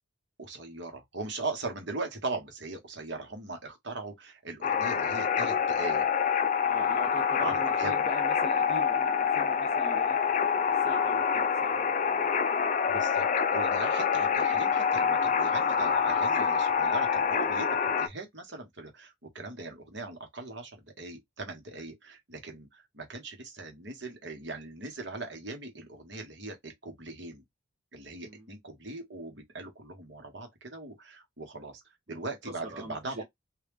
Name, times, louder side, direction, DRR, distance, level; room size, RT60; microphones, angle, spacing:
voice 1, 0.4-6.1 7.4-8.1 12.9-27.4 27.9-31.8 32.1-33.2, right 3 dB, 55° right, 1.3 m, -40 dB
sound 1, 4.6-18.1, left 6 dB, 35° left, 0.4 m, -26 dB
voice 2, 6.6-12.3 28.2-28.5 32.1-33.2, right 1 dB, 30° right, 0.9 m, -42 dB
3.2 x 2.7 x 3.4 m
head